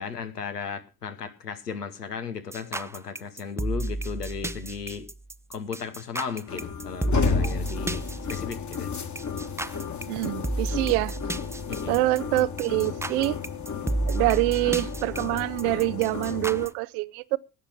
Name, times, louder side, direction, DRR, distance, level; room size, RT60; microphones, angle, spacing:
voice 1, 0.0-5.1 5.5-8.9 11.7-12.0, left 6 dB, 85° left, 1.1 m, -36 dB
sound 1, 2.5-16.7, right 2 dB, 5° right, 0.6 m, -32 dB
sound 2, 6.5-16.7, left 6 dB, 40° left, 1.8 m, -33 dB
voice 2, 10.1-11.2 11.9-13.4 14.1-17.4, right 21 dB, 65° right, 0.7 m, -25 dB
17.0 x 6.6 x 5.8 m
figure-of-eight pair, 40°, 47 cm